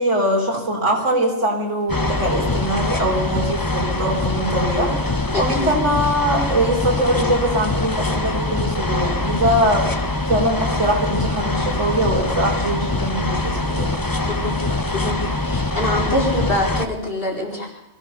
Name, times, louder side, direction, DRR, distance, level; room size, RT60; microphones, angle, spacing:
voice 1, 0.0-9.9 10.3-14.2, right 1 dB, 75° right, -2 dB, 4.9 m, -22 dB
sound 1, 1.9-16.9, left 2 dB, 20° left, 1.0 m, -23 dB
voice 2, 5.3-5.7 14.3-14.6 14.9-17.7, left 1 dB, 45° left, -1 dB, 4.7 m, -25 dB
25.0 x 15.5 x 6.9 m, 0.93 s
omnidirectional pair, 1.3 m